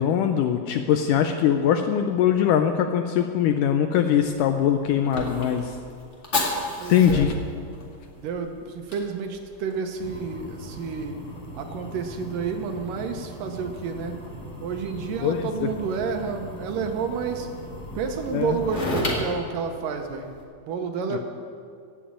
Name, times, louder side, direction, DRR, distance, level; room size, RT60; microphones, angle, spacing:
voice 1, 0.0-5.8 6.9-7.3 15.2-15.7 18.3-18.6 21.1-21.2, left 9 dB, 80° left, 6 dB, 1.9 m, -22 dB
Fire, 4.2-20.4, left 1 dB, 25° left, 1.5 m, -35 dB
voice 2, 6.8-7.4 8.2-11.2 11.6-14.1 14.6-17.5 18.0-20.3 20.7-21.2, right 5 dB, 70° right, 5 dB, 2.4 m, -30 dB
15.5 x 7.4 x 8.8 m, 2.3 s
omnidirectional pair, 4.2 m